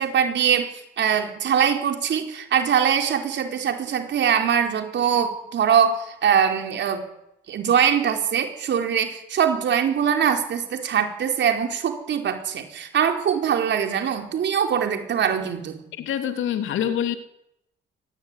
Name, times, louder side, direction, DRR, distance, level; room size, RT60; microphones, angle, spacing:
voice 1, 0.0-7.0 7.5-15.8, right 8 dB, 65° right, 5 dB, 4.6 m, -22 dB
voice 2, 15.9-17.2, left 9 dB, 80° left, 8 dB, 3.0 m, -25 dB
23.5 x 19.0 x 9.9 m, 0.85 s
cardioid pair, 90°, 20 cm